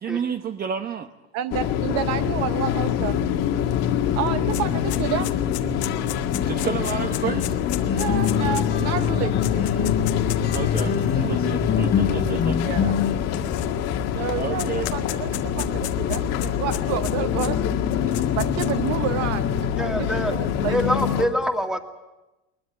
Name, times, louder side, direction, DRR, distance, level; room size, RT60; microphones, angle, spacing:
voice 1, 0.0-1.1 6.5-7.6 10.5-12.7 14.4-14.9 18.1-18.2, right 7 dB, 30° right, 1.0 m, -30 dB
voice 2, 1.3-3.2 4.1-5.3 7.9-9.9 10.9-11.4 12.6-12.9 14.2-17.8 18.2-19.5 19.8-20.8, right 11 dB, 50° right, 0.8 m, -30 dB
sound 1, 1.5-21.2, left 9 dB, 50° left, 1.9 m, -25 dB
sound 2, 3.7-3.8 4.0-11.0 11.8-11.9 12.9-14.0 14.3-17.5 17.9-18.9, left 16 dB, 80° left, 1.4 m, -35 dB
sound 3, 6.3-13.2, left 7 dB, 30° left, 1.7 m, -26 dB
voice 3, 19.8-20.4 20.7-21.8, equal, ahead, 2.2 m, -25 dB
21.0 x 20.5 x 8.0 m
supercardioid pair, 100°, 32 cm